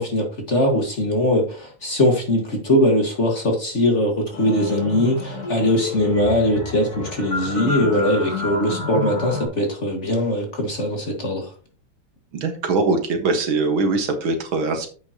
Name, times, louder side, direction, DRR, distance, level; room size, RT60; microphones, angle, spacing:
voice 1, 0.0-11.4, left 1 dB, 35° left, 2 dB, 1.9 m, -21 dB
sound 1, 4.3-9.5, left 3 dB, 80° left, 4.1 m, -30 dB
voice 2, 12.3-14.9, right 3 dB, 65° right, 5 dB, 2.2 m, -22 dB
9.8 x 8.0 x 2.9 m, 0.38 s
omnidirectional pair, 2.4 m